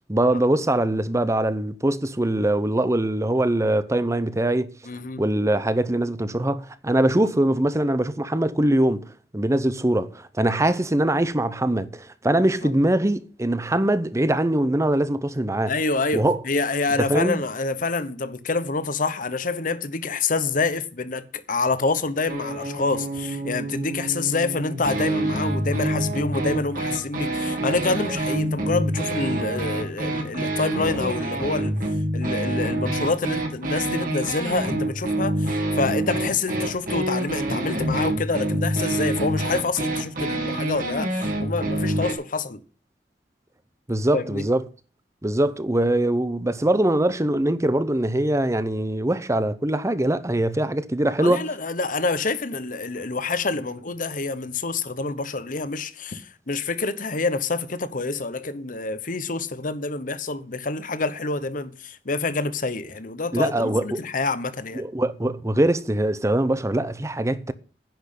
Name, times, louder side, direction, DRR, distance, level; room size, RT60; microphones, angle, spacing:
voice 1, 0.1-4.7 5.2-9.1 9.3-15.7 16.1-16.4 17.0-17.4 43.9-44.6 45.2-51.5 63.3-64.0 64.7-67.5, right 1 dB, 15° right, 0.7 m, -22 dB
voice 2, 4.8-5.2 12.6-12.7 15.7-31.7 32.1-42.6 44.1-44.5 51.2-64.8, left 3 dB, 50° left, 1.0 m, -27 dB
sound 1, 22.3-42.1, right 1 dB, 50° right, 2.8 m, -27 dB
10.5 x 6.2 x 8.4 m
head